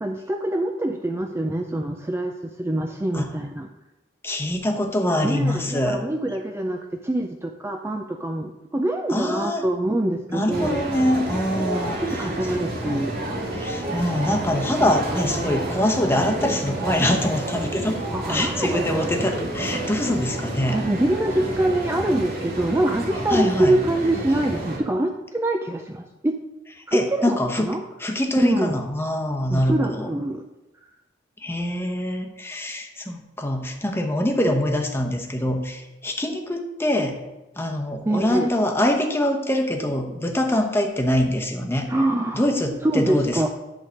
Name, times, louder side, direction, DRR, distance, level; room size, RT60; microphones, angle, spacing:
voice 1, 0.0-3.7 5.2-10.8 12.0-13.2 18.1-19.1 20.7-26.3 26.9-27.8 28.4-28.8 29.5-30.5 38.1-38.5 41.9-42.4 42.8-43.5, right 1 dB, 15° right, 4 dB, 0.4 m, -25 dB
voice 2, 4.2-6.0 9.1-9.6 10.3-12.0 12.8-13.0 13.6-18.0 18.3-20.8 23.3-23.8 26.9-30.1 31.4-37.2 37.6-41.9 42.3-43.5, left 1 dB, 15° left, 2 dB, 1.0 m, -24 dB
sound 1, 10.5-24.8, right 1 dB, 55° right, 2.1 m, -29 dB
11.0 x 3.7 x 6.3 m, 0.99 s
head